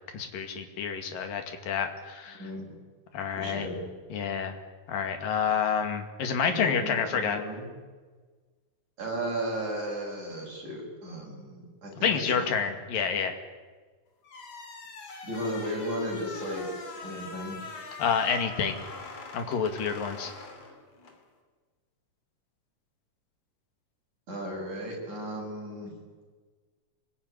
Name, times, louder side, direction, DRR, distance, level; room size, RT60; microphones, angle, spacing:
voice 1, 0.1-2.5 3.1-3.7 4.1-4.6 4.9-7.4 12.0-13.4 18.0-18.8 19.3-20.3, left 6 dB, 85° left, 6 dB, 4.1 m, -29 dB
voice 2, 2.4-2.7 3.4-3.8 6.5-7.7 9.0-12.5 15.2-16.7 17.0-17.6 24.3-25.9, equal, 60° right, -1 dB, 8.8 m, -35 dB
sound 1, 14.2-21.2, left 4 dB, 50° left, 4.1 m, -43 dB
25.5 x 20.5 x 9.9 m, 1.4 s
omnidirectional pair, 3.9 m